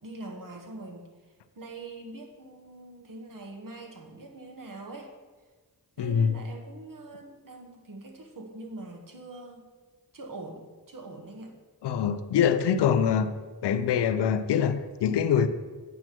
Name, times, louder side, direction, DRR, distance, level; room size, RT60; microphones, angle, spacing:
voice 1, 0.0-5.1 6.0-9.6 10.1-11.5, right 2 dB, 55° right, 2 dB, 1.4 m, -43 dB
voice 2, 6.0-6.4 11.8-13.3 13.6-15.5, left 7 dB, 80° left, 12 dB, 0.5 m, -24 dB
9.0 x 3.0 x 6.1 m, 1.4 s
cardioid pair, 45°, 41 cm